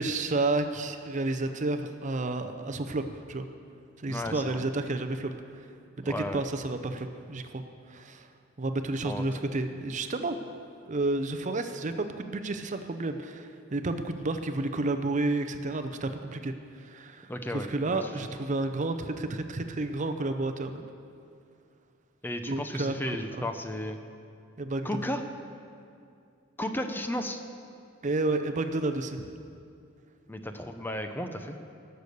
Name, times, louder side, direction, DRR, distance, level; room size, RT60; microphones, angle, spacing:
voice 1, 0.0-3.5 4.0-5.7 6.0-7.6 7.9-8.3 8.6-10.4 10.9-20.8 22.5-23.2 24.6-24.9 28.0-29.3, right 2 dB, 40° right, 8 dB, 0.6 m, -31 dB
voice 2, 4.1-4.6 6.0-6.4 9.0-9.2 17.3-18.3 22.2-24.0 24.8-25.2 26.6-27.4 30.3-31.6, left 1 dB, 10° left, 6 dB, 0.6 m, -34 dB
18.5 x 6.8 x 6.6 m, 2.4 s
head